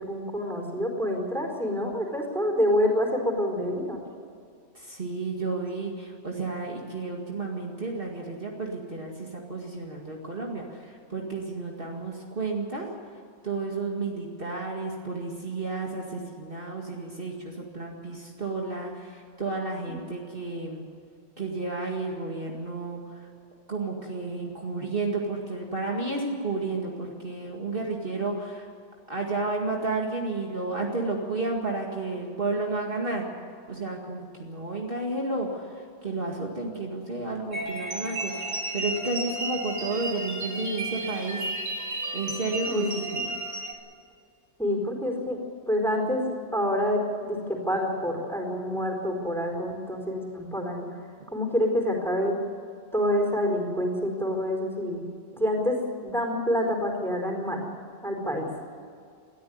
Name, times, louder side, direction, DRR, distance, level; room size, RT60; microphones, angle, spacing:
voice 1, 0.0-4.0 19.9-20.0 42.7-43.2 44.6-45.4 45.7-50.9 51.3-52.3 52.9-55.0 55.3-55.8 56.0-57.6 58.0-58.5, equal, ahead, 1 dB, 4.4 m, -27 dB
voice 2, 4.7-12.9 13.4-20.9 21.4-23.3 23.7-28.7 29.1-33.3 33.7-41.4 42.1-43.3, right 3 dB, 45° right, -1 dB, 2.3 m, -32 dB
sound 1, 37.5-43.7, right 1 dB, 80° right, 3.0 m, -33 dB
21.5 x 14.0 x 9.5 m, 2.3 s
omnidirectional pair, 1.3 m